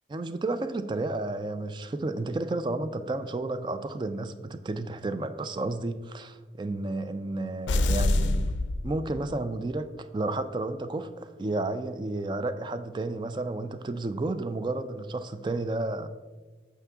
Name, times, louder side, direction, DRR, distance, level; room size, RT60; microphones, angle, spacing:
voice 1, 0.1-8.5 8.8-16.1, right 2 dB, 25° right, 0.3 m, -32 dB
sound 1, 7.7-9.5, left 2 dB, 90° left, 0.4 m, -26 dB
7.2 x 5.8 x 3.5 m
head